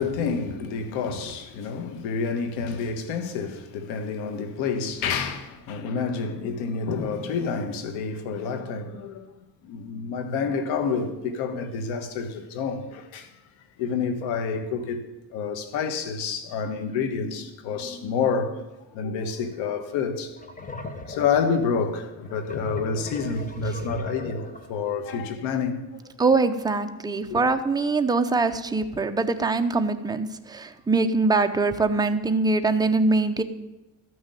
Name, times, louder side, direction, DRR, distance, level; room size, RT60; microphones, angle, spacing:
voice 1, 0.0-9.3 9.6-13.3 13.8-18.6 18.9-20.4 21.1-26.0 27.3-27.4, left 5 dB, 90° left, 1.6 m, -28 dB
sound 1, 19.4-19.6 20.0-24.8, left 1 dB, 20° left, 1.2 m, -37 dB
voice 2, 26.2-33.4, right 3 dB, 10° right, 0.7 m, -23 dB
13.0 x 6.3 x 9.1 m
cardioid pair, 115°, 45 cm